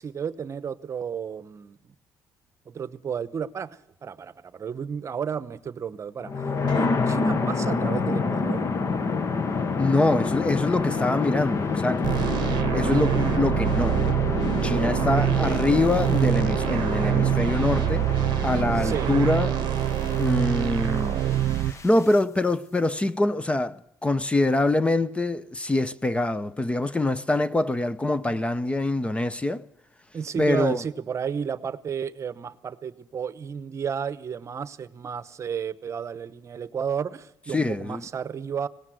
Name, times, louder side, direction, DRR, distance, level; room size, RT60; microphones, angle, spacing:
voice 1, 0.0-1.8 2.7-6.4 6.7-8.7 15.4-15.6 18.8-19.1 30.1-38.7, right 7 dB, 40° right, 1.0 m, -32 dB
sound 1, 6.2-22.1, left 4 dB, 40° left, 1.4 m, -28 dB
sound 2, 6.7-14.8, left 6 dB, 70° left, 6.1 m, -47 dB
voice 2, 9.8-12.2 12.7-14.0 14.5-18.1 18.4-19.6 20.2-21.3 21.6-29.6 30.4-30.8 37.5-38.1, left 2 dB, 15° left, 0.7 m, -24 dB
sound 3, 12.0-21.7, right 13 dB, 75° right, 0.7 m, -25 dB
19.0 x 18.0 x 7.8 m
cardioid pair, 105°, 8 cm